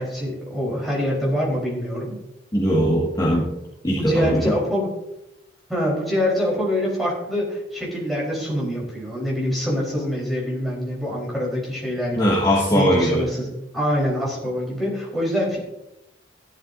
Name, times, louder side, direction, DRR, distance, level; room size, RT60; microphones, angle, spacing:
voice 1, 0.0-2.2 3.9-4.9 5.7-12.4 12.7-13.5 13.7-15.6, equal, ahead, -5 dB, 4.0 m, -25 dB
voice 2, 2.5-3.5 3.8-4.5 12.2-13.2, equal, 20° left, -6 dB, 1.9 m, -20 dB
15.0 x 11.5 x 2.7 m, 0.89 s
head